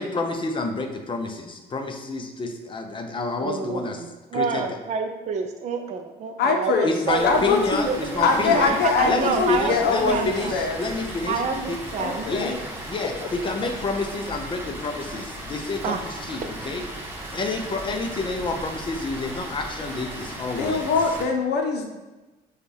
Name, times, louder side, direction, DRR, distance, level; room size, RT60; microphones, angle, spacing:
voice 1, 0.0-4.0 4.3-4.6 6.8-8.7 9.0-11.4 11.7-11.8 12.2-12.6 12.9-16.8 17.3-20.9, left 3 dB, 30° left, 5 dB, 0.6 m, -29 dB
voice 2, 3.4-7.4 7.8-10.5 11.3-12.3 15.8-16.0, right 5 dB, 45° right, 5 dB, 0.4 m, -28 dB
voice 3, 6.4-7.0 7.2-7.9 8.2-10.8 12.0-12.6 20.6-21.8, left 4 dB, 70° left, 3 dB, 0.8 m, -22 dB
Water, 7.0-21.2, right 1 dB, 15° right, 1.0 m, -37 dB
6.5 x 2.4 x 3.3 m, 1.1 s
cardioid pair, 110°, 17 cm